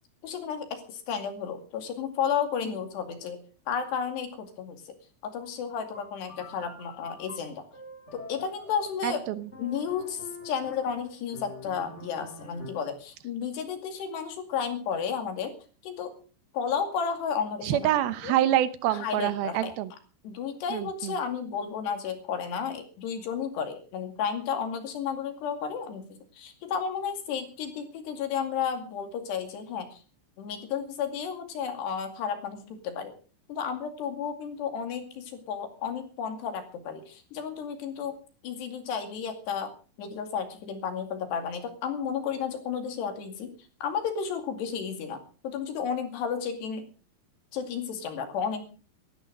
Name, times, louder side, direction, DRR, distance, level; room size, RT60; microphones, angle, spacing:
voice 1, 0.2-3.4 3.7-4.8 5.2-7.6 8.1-9.2 9.6-15.5 15.8-16.1 16.5-17.9 18.2-18.4 18.9-19.7 20.2-26.1 26.4-30.0 30.4-33.1 33.5-38.2 38.4-39.7 40.0-43.5 43.8-46.8 47.5-48.6, left 7 dB, 65° left, 6 dB, 4.4 m, -32 dB
sound 1, 5.9-13.0, left 2 dB, 25° left, 1.6 m, -46 dB
voice 2, 9.0-9.5 17.6-19.9 20.7-21.2, right 12 dB, 75° right, 14 dB, 2.5 m, -26 dB
18.0 x 13.0 x 5.1 m, 0.37 s
omnidirectional pair, 5.3 m